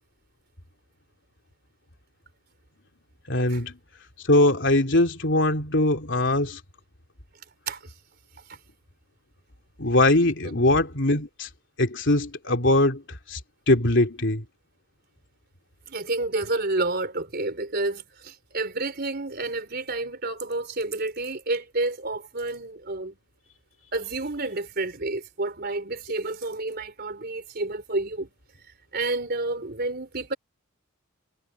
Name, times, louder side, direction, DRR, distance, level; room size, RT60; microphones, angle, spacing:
voice 1, 3.3-3.8 4.2-6.6 9.8-11.5 11.8-13.4 13.7-14.4, left 1 dB, 55° left, 3.4 m, -21 dB
voice 2, 15.9-23.2 23.9-28.3 28.9-30.3, right 2 dB, 50° right, 4.1 m, -30 dB
head